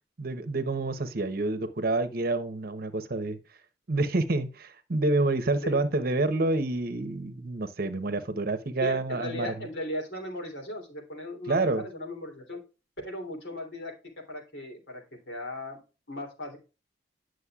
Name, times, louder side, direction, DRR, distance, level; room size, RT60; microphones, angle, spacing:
voice 1, 0.2-3.4 3.9-9.5 11.5-11.8, right 2 dB, 55° right, 0.9 m, -28 dB
voice 2, 8.8-12.6 13.0-13.9 14.3-15.8 16.1-16.6, left 1 dB, 85° left, 3.1 m, -37 dB
9.7 x 6.4 x 2.4 m
head